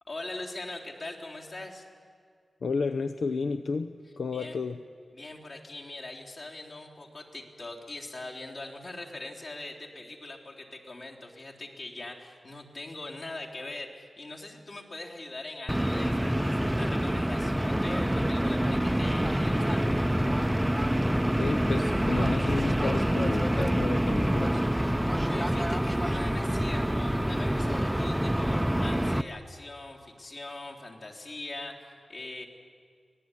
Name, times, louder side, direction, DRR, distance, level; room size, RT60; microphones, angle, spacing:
voice 1, 0.1-1.9 4.3-4.6 5.1-19.9 25.3-32.5, left 2 dB, 55° left, -2 dB, 3.6 m, -42 dB
voice 2, 2.6-4.8 21.4-24.7, left 4 dB, 80° left, 9 dB, 0.8 m, -32 dB
sound 1, 15.7-29.2, equal, 5° right, 0.6 m, -26 dB
25.0 x 19.0 x 10.0 m, 2.1 s
wide cardioid pair, 135°, 0 cm